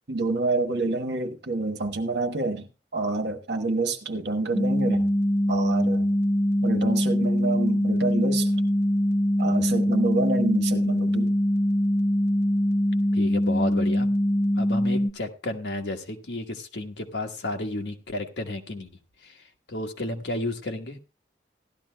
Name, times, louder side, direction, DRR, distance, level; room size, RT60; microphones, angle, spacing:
voice 1, 0.1-5.2 5.5-6.1 6.6-8.5 9.4-11.3, right 3 dB, 75° right, 1.3 m, -28 dB
sound 1, 4.5-15.1, equal, 15° left, 0.7 m, -23 dB
voice 2, 13.1-14.1 14.6-18.9 19.2-21.0, left 2 dB, 85° left, 1.4 m, -32 dB
16.5 x 12.0 x 2.3 m
head